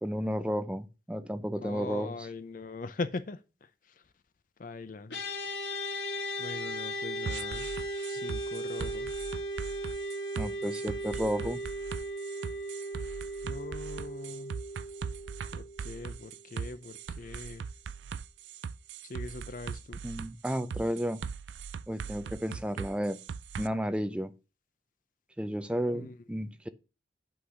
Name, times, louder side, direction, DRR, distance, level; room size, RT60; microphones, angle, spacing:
voice 1, 0.0-2.1 10.4-11.6 20.0-21.2 21.9-23.2 23.6-24.3 25.4-26.7, equal, 5° right, 0.5 m, -32 dB
voice 2, 1.6-4.0 4.6-5.2 6.4-7.7 8.0-9.1 13.4-14.6 15.5-17.7 19.0-20.0 25.9-26.2, left 3 dB, 45° left, 0.5 m, -41 dB
sound 1, 5.1-16.6, equal, 80° left, 2.5 m, -37 dB
sound 2, 7.3-23.7, right 6 dB, 80° right, 0.4 m, -40 dB
8.5 x 3.9 x 6.4 m
head